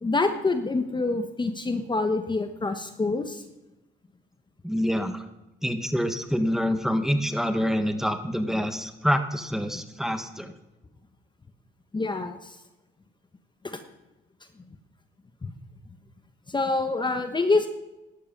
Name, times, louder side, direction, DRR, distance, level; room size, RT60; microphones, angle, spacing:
voice 1, 0.0-3.4 9.7-9.8 11.9-12.6 13.6-13.8 15.4-15.5 16.5-17.7, left 3 dB, 25° left, 8 dB, 1.1 m, -26 dB
voice 2, 4.6-5.3 5.6-10.5, equal, ahead, 7 dB, 1.4 m, -26 dB
13.5 x 11.5 x 5.3 m, 0.98 s
cardioid pair, 90°, 20 cm